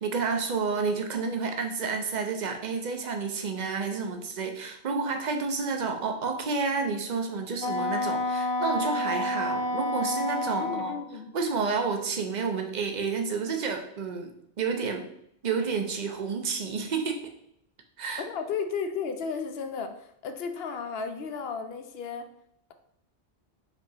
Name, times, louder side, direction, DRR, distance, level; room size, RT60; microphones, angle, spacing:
voice 1, 0.0-10.9 11.3-14.3 14.6-15.1 15.4-17.3 18.0-18.2, right 4 dB, 50° right, 4 dB, 0.7 m, -30 dB
Wind instrument woodwind instrument, 7.6-11.0, left 2 dB, 45° left, 0.3 m, -29 dB
voice 2, 10.6-11.3 18.2-22.3, left 5 dB, 70° left, 7 dB, 0.8 m, -34 dB
4.5 x 2.9 x 4.0 m, 0.71 s
omnidirectional pair, 1.1 m